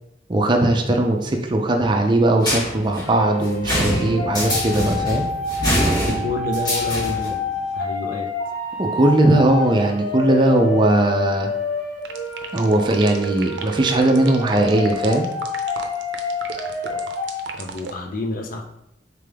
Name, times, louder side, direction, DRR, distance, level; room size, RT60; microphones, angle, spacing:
voice 1, 0.3-5.3 8.8-11.5 12.5-15.3, right 1 dB, 25° right, 3 dB, 0.4 m, -19 dB
sound 1, 2.4-7.4, equal, 20° left, 1.4 m, -24 dB
sound 2, 3.0-17.4, left 3 dB, 85° left, 1.6 m, -28 dB
voice 2, 6.0-7.4 7.7-8.3 17.6-18.6, left 2 dB, 50° left, 3 dB, 0.5 m, -28 dB
sound 3, 12.0-17.9, right 6 dB, 80° right, 0.5 m, -34 dB
3.7 x 3.4 x 3.4 m, 0.84 s
head